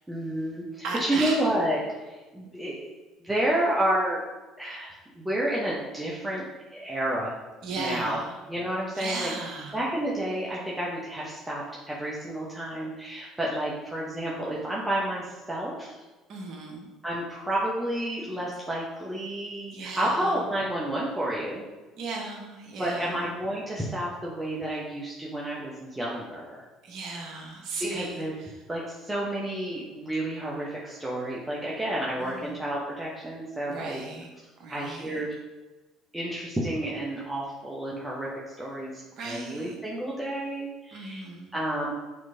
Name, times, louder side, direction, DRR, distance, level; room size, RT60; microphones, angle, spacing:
voice 1, 0.1-2.9 3.2-4.2 4.6-6.4 6.7-7.4 7.8-8.2 8.5-9.3 9.7-15.9 17.0-21.6 22.8-26.6 27.8-28.3 28.7-34.0 34.7-35.4 36.1-41.2 41.5-41.9, right 1 dB, 10° right, -5 dB, 0.9 m, -30 dB
voice 2, 0.8-1.4 7.6-8.3 9.0-9.8 16.3-16.9 19.7-20.3 22.0-23.2 26.8-28.5 32.2-32.5 33.7-34.3 34.6-35.2 39.2-39.7 40.9-41.5, right 3 dB, 60° right, 0 dB, 1.0 m, -36 dB
6.5 x 3.0 x 2.7 m, 1.2 s
hypercardioid pair, 60°, 0 cm